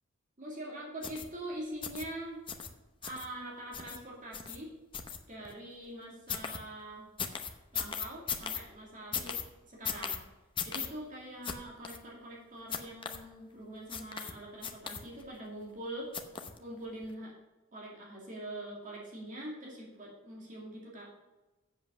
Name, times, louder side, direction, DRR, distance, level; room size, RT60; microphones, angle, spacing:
voice 1, 0.4-2.4 3.0-4.7 5.3-7.1 7.7-10.2 10.6-16.1 16.6-17.3 17.7-21.1, right 1 dB, 40° right, -3 dB, 2.4 m, -44 dB
sound 1, 1.0-1.2 1.8-2.0 2.5-2.7 3.0-3.3 3.7-4.0 4.3-4.6 4.9-5.5 6.3-6.6 7.2-8.6 9.1-9.4 9.8-10.2 10.6-10.9 11.4-11.5 11.8-12.0 12.7-13.2 13.9-14.3 14.6-15.3 16.1-16.6 17.0-17.1, left 7 dB, 25° left, 0.8 m, -37 dB
8.0 x 7.5 x 6.1 m, 1.1 s
head